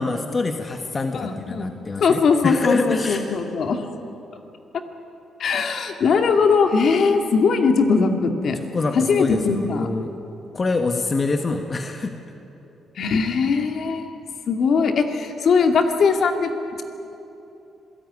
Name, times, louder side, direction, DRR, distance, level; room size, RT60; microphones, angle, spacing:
voice 1, 0.0-3.4 8.5-10.1 10.5-12.1, left 3 dB, 35° left, 5 dB, 1.5 m, -25 dB
voice 2, 1.1-3.8 5.4-8.6 8.9-9.9 13.0-14.0 14.5-16.5, left 5 dB, 60° left, 5 dB, 2.3 m, -20 dB
26.5 x 17.0 x 9.6 m, 3.0 s
cardioid pair, 90°, 0 cm